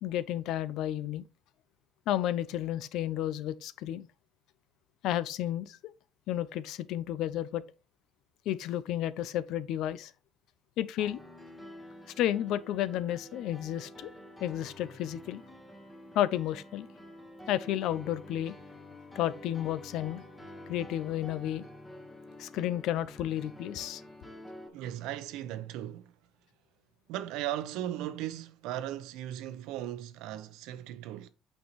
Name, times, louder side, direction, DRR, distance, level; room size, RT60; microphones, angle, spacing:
voice 1, 0.0-1.2 2.1-4.1 5.0-5.8 6.3-7.6 8.5-10.1 10.8-11.2 12.2-14.1 14.4-15.4 16.1-16.9 17.5-18.5 19.1-20.2 20.7-21.6 22.4-24.0, left 12 dB, 60° left, 0.5 m, -32 dB
Piano, 11.0-24.7, left 1 dB, 10° left, 1.4 m, -49 dB
voice 2, 24.7-26.1 27.1-31.3, right 12 dB, 80° right, 0.8 m, -37 dB
8.7 x 5.5 x 3.1 m
cardioid pair, 165°, 0 cm